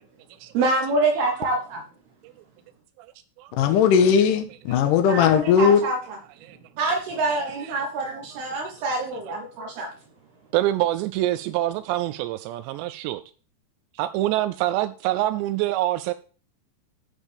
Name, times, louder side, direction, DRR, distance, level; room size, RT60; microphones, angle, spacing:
voice 1, 0.5-1.8 5.1-6.0 6.8-9.9, right 2 dB, 70° right, 2 dB, 2.8 m, -26 dB
voice 2, 3.6-5.8, left 7 dB, 75° left, 6 dB, 2.0 m, -18 dB
voice 3, 10.5-13.2 13.9-16.1, right 15 dB, 90° right, 12 dB, 2.4 m, -25 dB
10.0 x 7.3 x 3.5 m, 0.38 s
omnidirectional pair, 5.5 m